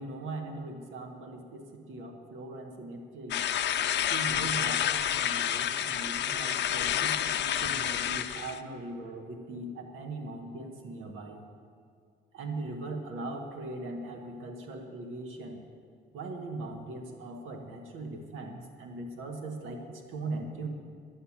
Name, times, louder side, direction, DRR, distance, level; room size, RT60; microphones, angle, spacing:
voice 1, 0.0-3.4 4.1-11.4 12.3-15.6 16.1-20.7, right 2 dB, 85° right, 3 dB, 1.4 m, -40 dB
sound 1, 3.3-8.6, left 10 dB, 65° left, 0.6 m, -29 dB
11.0 x 7.9 x 8.6 m, 2.2 s
cardioid pair, 90°, 20 cm